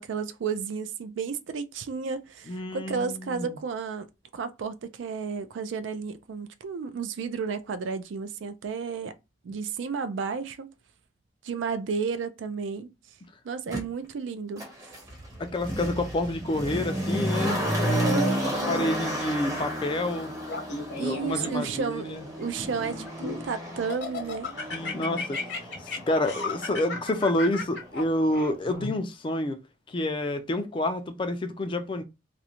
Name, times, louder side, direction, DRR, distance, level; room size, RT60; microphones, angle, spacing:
voice 1, 0.0-9.1 9.4-10.7 11.4-12.9 13.4-14.6 18.0-18.9 21.0-24.5, right 5 dB, 75° right, 0.4 m, -32 dB
voice 2, 2.5-3.6 15.4-20.3 20.9-22.3 24.7-29.6 29.9-32.0, left 1 dB, 25° left, 0.3 m, -29 dB
Motor vehicle (road), 13.7-13.8 14.6-27.5 27.8-27.9, equal, 15° right, 0.7 m, -32 dB
Laughter, 20.5-21.8 22.4-23.5 23.9-28.9, left 3 dB, 60° left, 0.8 m, -35 dB
2.4 x 2.1 x 2.8 m
head